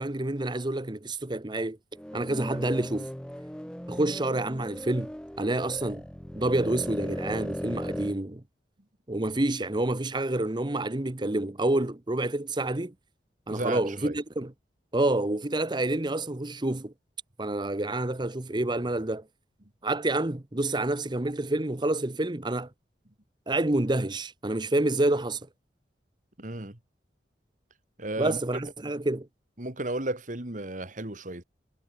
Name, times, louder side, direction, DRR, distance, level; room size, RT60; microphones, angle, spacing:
voice 1, 0.0-1.8 2.1-3.1 3.9-5.1 5.4-6.0 6.3-8.4 9.1-12.9 13.5-14.5 14.9-16.9 17.4-19.2 19.8-22.7 23.5-25.4 28.2-29.3, right 2 dB, 25° right, 0.9 m, -28 dB
sound 1, 1.9-8.1, equal, 5° left, 1.3 m, -37 dB
voice 2, 13.5-14.2 26.4-26.8 28.0-28.4 29.6-31.4, right 2 dB, 45° right, 2.5 m, -33 dB
head